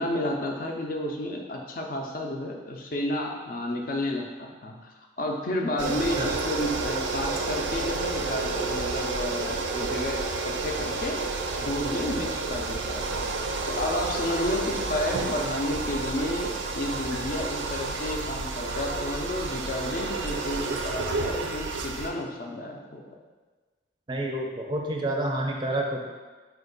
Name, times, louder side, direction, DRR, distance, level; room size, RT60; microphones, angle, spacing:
voice 1, 0.0-11.2 11.6-13.3 13.7-23.0, left 1 dB, 45° left, 1 dB, 0.5 m, -31 dB
sound 1, 5.8-22.1, right 3 dB, 85° right, 0.4 m, -30 dB
voice 2, 24.1-26.0, right 1 dB, 25° right, 0 dB, 0.4 m, -28 dB
4.4 x 2.5 x 3.9 m, 1.4 s
head